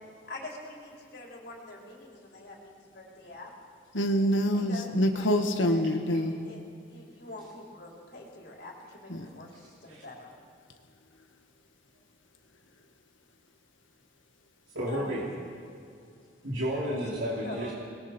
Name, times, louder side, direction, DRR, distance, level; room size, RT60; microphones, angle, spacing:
voice 1, 0.2-3.5 4.5-5.8 6.4-6.6 6.9-10.3 14.9-15.3 16.8-17.0 17.4-17.7, left 2 dB, 55° left, -2 dB, 4.1 m, -44 dB
voice 2, 3.9-6.4 9.1-9.3, equal, 90° left, 5 dB, 1.8 m, -26 dB
voice 3, 14.7-15.2 16.5-17.7, equal, 85° right, -6 dB, 3.4 m, -31 dB
29.5 x 21.0 x 4.5 m, 2.4 s
head